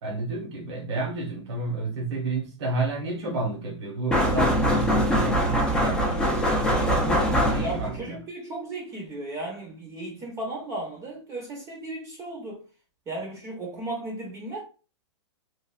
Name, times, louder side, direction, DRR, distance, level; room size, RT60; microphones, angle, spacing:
voice 1, 0.0-8.2, right 3 dB, 60° right, 1.2 m, -31 dB
sound 1, 4.1-8.0, equal, 5° left, 0.5 m, -23 dB
voice 2, 7.6-12.6 13.1-14.6, right 2 dB, 20° right, 0.8 m, -35 dB
3.2 x 2.4 x 2.3 m
hypercardioid pair, 135°, 15 cm